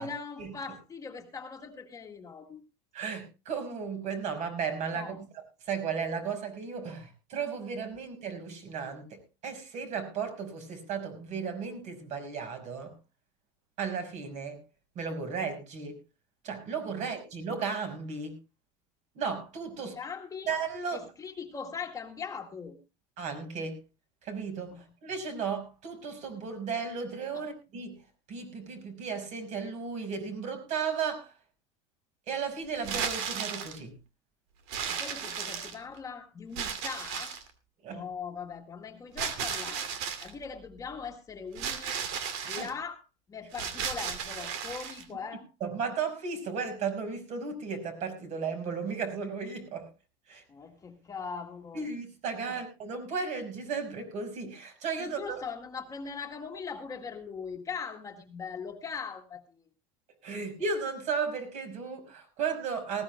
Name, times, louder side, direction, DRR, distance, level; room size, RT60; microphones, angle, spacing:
voice 1, 0.0-2.6 4.9-5.2 19.8-20.5 20.9-22.8 24.7-24.8 27.3-27.4 34.9-37.4 37.9-39.9 40.2-42.0 42.5-43.0 43.3-45.5 50.5-51.9 52.5-52.6 55.0-59.4 60.3-60.4, left 5 dB, 20° left, 3 dB, 1.9 m, -40 dB
voice 2, 2.9-12.9 13.8-14.6 15.0-16.0 16.4-18.3 19.1-20.0 20.5-21.0 23.2-23.8 24.2-28.0 28.3-31.3 32.3-34.0 37.8-38.0 42.4-42.7 45.6-49.9 50.3-50.4 51.7-55.4 60.2-63.0, right 5 dB, 45° right, 7 dB, 5.6 m, -35 dB
sound 1, 32.8-33.8 34.7-36.0 36.6-37.5 39.2-40.3 41.6-42.7 43.5-45.0, right 7 dB, 65° right, 2.6 m, -34 dB
19.0 x 17.0 x 2.2 m, 0.28 s
supercardioid pair, 135°, 16 cm